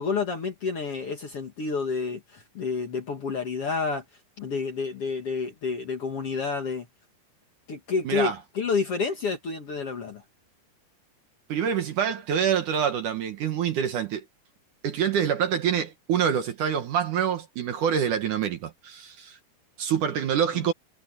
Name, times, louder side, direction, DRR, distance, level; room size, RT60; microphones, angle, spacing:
voice 1, 0.0-4.0 4.4-6.9 7.7-10.2 20.5-20.7, left 5 dB, 45° left, 2.2 m, -29 dB
voice 2, 8.1-8.4 11.5-14.2 14.8-19.4 19.8-20.7, right 8 dB, 65° right, 2.5 m, -26 dB
omnidirectional pair, 4.6 m